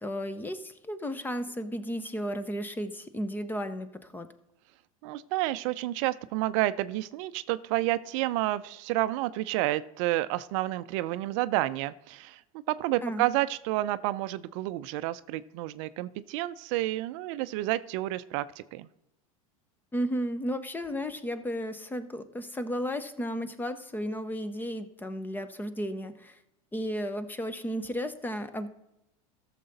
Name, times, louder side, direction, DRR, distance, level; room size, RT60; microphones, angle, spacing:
voice 1, 0.0-4.3 13.0-13.3 19.9-26.4 26.7-28.7, equal, 10° left, 12 dB, 0.9 m, -34 dB
voice 2, 5.0-12.4 12.7-18.9, right 16 dB, 60° right, 14 dB, 0.5 m, -30 dB
14.0 x 6.8 x 4.0 m, 0.88 s
hypercardioid pair, 105°, 18 cm